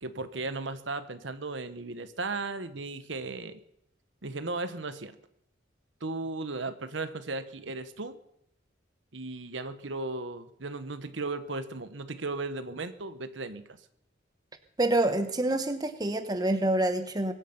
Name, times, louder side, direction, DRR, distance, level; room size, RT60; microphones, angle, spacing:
voice 1, 0.0-3.6 4.2-5.1 6.0-8.2 9.1-13.6, right 3 dB, 75° right, 11 dB, 1.2 m, -36 dB
voice 2, 14.8-17.3, right 1 dB, 20° right, 8 dB, 1.1 m, -27 dB
23.0 x 9.3 x 6.0 m, 0.75 s
head